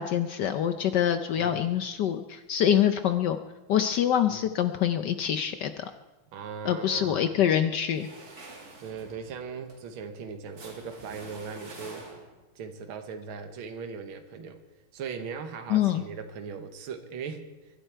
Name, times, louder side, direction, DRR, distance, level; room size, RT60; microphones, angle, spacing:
voice 1, 0.0-3.4 3.7-5.9 6.6-8.1 15.7-16.0, left 9 dB, 70° left, 10 dB, 1.1 m, -25 dB
voice 2, 6.3-7.3 8.8-12.0 12.6-14.6 14.9-17.5, right 6 dB, 70° right, 6 dB, 1.9 m, -39 dB
sound 1, 7.9-12.5, right 2 dB, 45° right, 2.7 m, -47 dB
23.5 x 11.0 x 4.5 m, 1.1 s
omnidirectional pair, 2.4 m